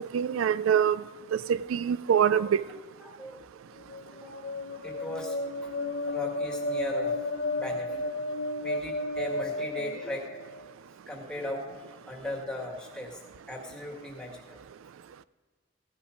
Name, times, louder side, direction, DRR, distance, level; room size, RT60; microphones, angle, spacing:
voice 1, 0.1-1.0 1.3-2.6, right 8 dB, 85° right, 0.3 m, -24 dB
voice 2, 3.0-3.4 4.1-4.4 4.8-5.4 5.6-5.7 6.1-7.2 7.5-8.0 8.6-10.3 11.1-11.8 12.1-13.2 13.5-14.4, left 1 dB, 5° left, 1.8 m, -38 dB
sound 1, 3.8-10.6, left 2 dB, 70° left, 1.0 m, -33 dB
15.5 x 10.0 x 5.1 m
head